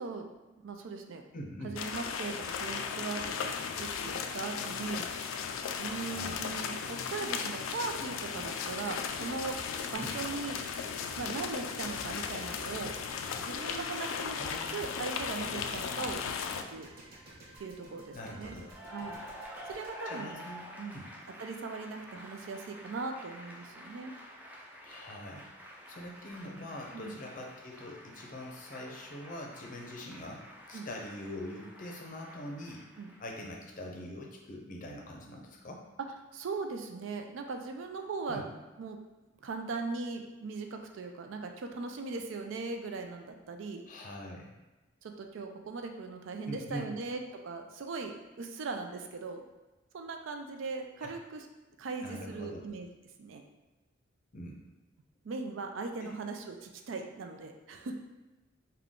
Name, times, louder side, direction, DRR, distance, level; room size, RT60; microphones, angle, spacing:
voice 1, 0.0-1.2 1.6-5.4 5.8-9.6 9.9-10.6 11.2-13.0 13.4-14.4 14.7-16.9 17.6-18.6 18.9-19.2 19.7-20.4 20.8-21.0 21.4-24.1 26.9-27.2 30.7-30.9 33.0-33.1 36.3-38.4 38.8-39.0 39.4-43.8 45.0-49.4 49.9-51.5 51.8-52.9 53.2-53.4 55.2-58.0, right 4 dB, 75° right, 4 dB, 0.4 m, -39 dB
voice 2, 1.3-1.7 6.0-6.4 10.0-10.2 14.4-14.8 18.1-18.8 20.1-20.7 20.9-21.0 24.8-25.5 25.9-32.8 33.2-35.8 38.3-38.5 43.9-44.5 46.5-46.9 51.0-51.1 52.0-52.6 54.3-54.6 56.0-56.1, left 1 dB, 40° left, 0 dB, 0.6 m, -43 dB
sound 1, 1.8-16.6, left 6 dB, 90° left, 0.3 m, -36 dB
sound 2, 8.9-21.1, right 1 dB, 50° right, 0.7 m, -53 dB
Cheering / Applause, 18.6-33.6, equal, 10° right, 0.4 m, -49 dB
3.6 x 2.2 x 3.6 m, 1.1 s
head